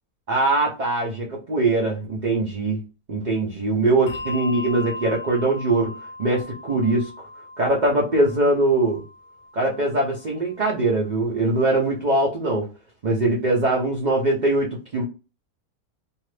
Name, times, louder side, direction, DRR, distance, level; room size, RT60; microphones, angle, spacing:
voice 1, 0.3-2.8 3.1-5.9 6.2-7.1 7.6-9.0 9.5-12.7 13.0-15.0, right 2 dB, 50° right, -2 dB, 0.5 m, -22 dB
Bell, 4.1-10.9, left 2 dB, 75° left, 0.6 m, -38 dB
2.8 x 2.4 x 3.2 m, 0.30 s
omnidirectional pair, 1.7 m